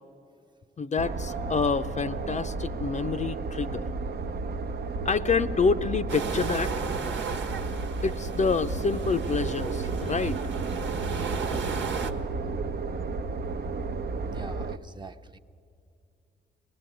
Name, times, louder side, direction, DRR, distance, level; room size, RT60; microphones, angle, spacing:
voice 1, 0.8-3.9 5.0-6.7 8.0-10.4, left 5 dB, 40° left, 0.6 m, -27 dB
sound 1, 1.0-14.8, right 3 dB, 55° right, 0.7 m, -32 dB
sound 2, 6.1-12.1, right 5 dB, 80° right, 1.3 m, -35 dB
voice 2, 14.3-15.4, right 3 dB, 25° right, 0.8 m, -44 dB
23.0 x 18.5 x 9.2 m
cardioid pair, 70°, 19 cm